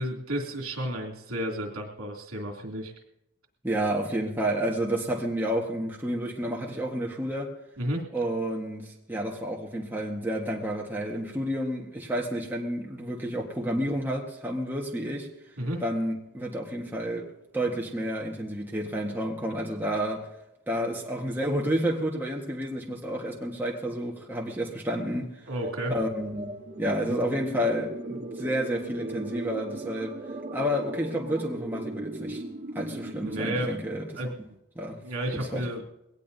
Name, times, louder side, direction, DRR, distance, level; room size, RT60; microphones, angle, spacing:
voice 1, 0.0-2.9 7.8-8.0 15.6-15.8 25.5-25.9 33.2-33.8 34.2-34.3 35.0-35.8, equal, 75° right, 2.7 m, -32 dB
voice 2, 3.6-7.5 8.1-15.3 15.8-17.3 17.5-20.3 20.7-25.3 25.9-30.2 30.5-32.4 32.7-34.0 34.7-35.0 35.5-35.7, equal, 10° right, 1.3 m, -30 dB
sound 1, 25.6-33.7, right 2 dB, 35° right, 0.8 m, -38 dB
21.5 x 18.0 x 2.7 m
head